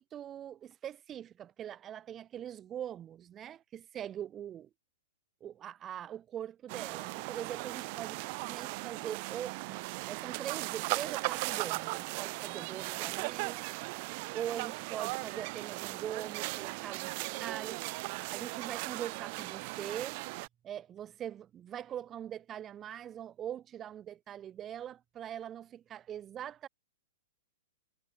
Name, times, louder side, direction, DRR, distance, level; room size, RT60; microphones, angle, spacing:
voice 1, 0.0-4.7 5.4-13.7 14.3-17.8 18.3-20.2 20.6-26.7, right 10 dB, 20° right, 2.4 m, -42 dB
sound 1, 6.7-20.5, right 29 dB, 45° right, 1.2 m, -38 dB
hypercardioid pair, 140°, 0 cm